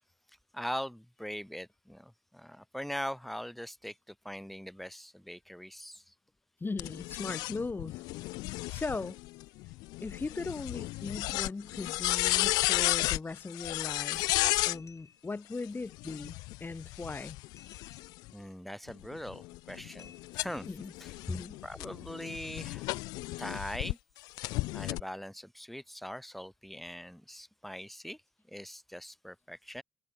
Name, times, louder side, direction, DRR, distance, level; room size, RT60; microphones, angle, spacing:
voice 1, 0.5-6.1 14.1-14.2 18.3-20.7 21.0-21.1 21.6-22.9 23.4-24.0 24.7-28.2 28.5-29.8, equal, ahead, 2.0 m, -41 dB
voice 2, 6.6-8.0 8.7-9.2 10.0-14.2 14.6-17.4 20.6-20.9 21.3-21.6, left 3 dB, 30° left, 1.6 m, -38 dB
sound 1, 6.8-14.8 15.9-18.3 18.9-23.9 24.4-25.0, left 22 dB, 85° left, 0.6 m, -33 dB
sound 2, 10.0-10.5 11.0-11.1 12.3-13.1 14.7-15.5 17.6-18.4 19.2-19.4 20.0-20.9 22.2-22.4, left 6 dB, 50° left, 3.6 m, -60 dB
hypercardioid pair, 50°, 7 cm